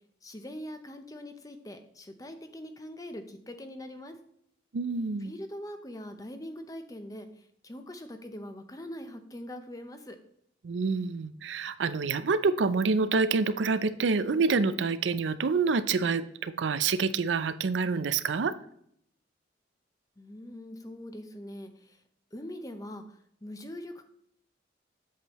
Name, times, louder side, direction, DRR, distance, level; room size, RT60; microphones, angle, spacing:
voice 1, 0.2-4.2 5.2-10.2 20.2-22.0 22.3-24.1, left 1 dB, 20° left, 7 dB, 0.7 m, -42 dB
voice 2, 4.7-5.3 10.6-18.5, right 4 dB, 75° right, 13 dB, 0.5 m, -27 dB
8.3 x 7.3 x 3.0 m, 0.69 s
head